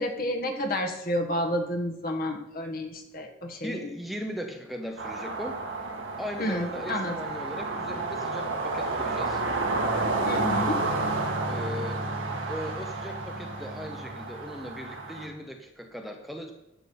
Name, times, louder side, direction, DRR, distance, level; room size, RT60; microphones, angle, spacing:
voice 1, 0.0-3.9 6.4-7.1 10.2-10.9, left 1 dB, 50° left, 3 dB, 1.5 m, -30 dB
voice 2, 3.6-5.6 6.2-9.4 11.3-12.2 12.5-16.5, equal, ahead, 3 dB, 0.8 m, -38 dB
sound 1, 5.0-15.3, right 2 dB, 85° right, 1.8 m, -30 dB
11.0 x 7.1 x 5.6 m, 0.89 s
head